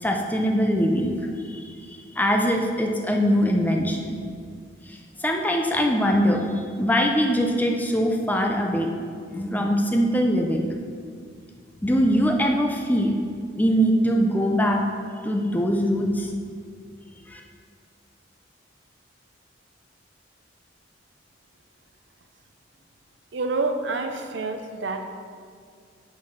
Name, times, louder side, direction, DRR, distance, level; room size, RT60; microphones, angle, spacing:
voice 1, 0.0-4.2 4.9-8.9 9.3-10.7 11.8-13.1 13.6-14.8 15.2-16.3 17.3-17.4, equal, 10° left, 2 dB, 0.5 m, -22 dB
voice 2, 23.3-25.0, right 3 dB, 65° right, 6 dB, 0.6 m, -27 dB
5.9 x 4.8 x 5.7 m, 2.1 s
head